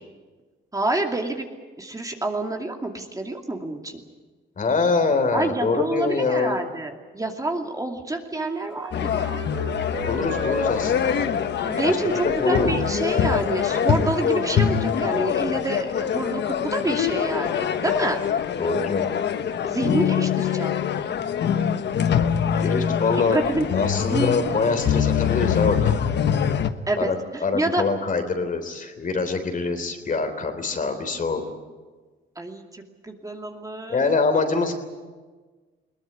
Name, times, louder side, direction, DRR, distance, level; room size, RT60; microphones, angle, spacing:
voice 1, 0.7-1.5 1.8-4.0 5.3-9.4 11.6-18.2 19.6-20.8 23.3-23.7 24.1-24.4 26.9-27.8 32.4-34.1, right 2 dB, 15° right, 3 dB, 2.6 m, -27 dB
voice 2, 4.6-6.6 10.1-11.2 11.8-12.7 18.6-19.0 22.6-23.4 23.7-26.0 27.0-31.4 33.9-34.7, left 4 dB, 40° left, 7 dB, 3.5 m, -24 dB
Wind instrument woodwind instrument, 8.3-14.9, right 2 dB, 75° right, 7.0 m, -35 dB
sound 1, 8.9-26.7, left 8 dB, 60° left, 1.2 m, -24 dB
21.0 x 19.0 x 9.6 m, 1.3 s
cardioid pair, 90°, 20 cm